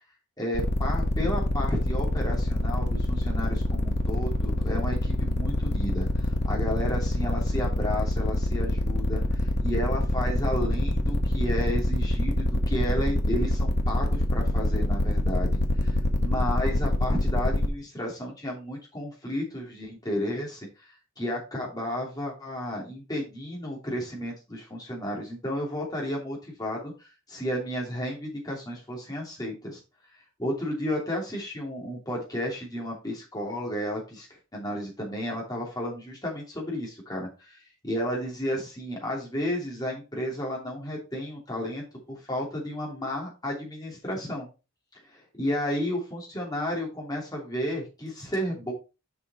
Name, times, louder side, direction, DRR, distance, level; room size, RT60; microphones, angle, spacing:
voice 1, 0.4-15.5 15.8-29.8 30.4-34.3 34.5-44.5 45.1-48.7, equal, 15° left, -2 dB, 3.0 m, -32 dB
sound 1, 0.5-17.7, left 1 dB, 50° left, 1.1 m, -25 dB
6.8 x 5.6 x 4.3 m, 0.30 s
head